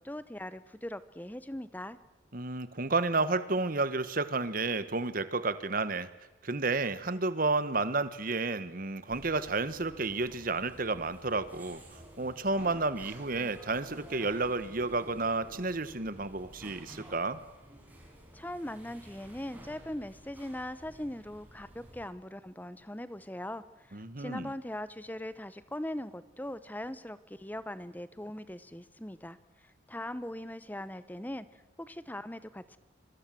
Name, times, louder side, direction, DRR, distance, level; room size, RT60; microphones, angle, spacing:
voice 1, 0.0-2.0 18.3-29.4 29.9-32.8, left 1 dB, 10° left, 15 dB, 0.8 m, -40 dB
voice 2, 2.3-6.1 6.4-11.8 12.2-17.4 23.9-24.5, right 3 dB, 45° right, 14 dB, 1.2 m, -31 dB
sound 1, 9.1-22.0, right 1 dB, 10° right, 6.0 m, -52 dB
26.0 x 24.5 x 7.7 m, 1.0 s
head